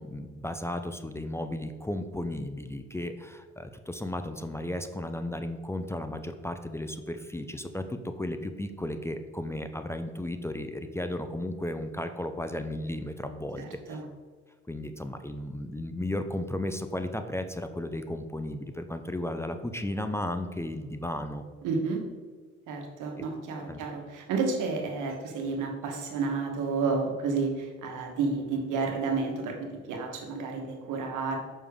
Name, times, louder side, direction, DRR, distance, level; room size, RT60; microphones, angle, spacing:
voice 1, 0.0-14.0 14.7-21.4 23.2-23.3 23.7-23.8, left 1 dB, 10° left, 8 dB, 0.4 m, -34 dB
voice 2, 13.6-14.1 21.6-22.0 22.7-31.4, right 4 dB, 90° right, 2 dB, 1.2 m, -31 dB
6.6 x 5.4 x 3.5 m, 1.5 s
cardioid pair, 90°, 30 cm